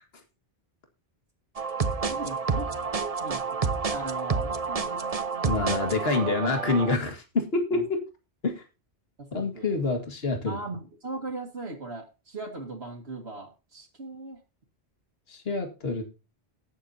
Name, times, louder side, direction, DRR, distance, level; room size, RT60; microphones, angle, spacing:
sound 1, 1.6-7.0, right 5 dB, 35° right, 0.9 m, -29 dB
voice 1, 2.1-5.9 7.7-7.9 9.2-9.8 10.5-14.4, right 3 dB, 80° right, 0 dB, 2.2 m, -39 dB
voice 2, 5.4-8.0 8.4-8.6 9.3-10.6 15.3-16.1, left 3 dB, 70° left, 4 dB, 2.1 m, -27 dB
18.0 x 7.6 x 2.7 m, 0.29 s
omnidirectional pair, 1.1 m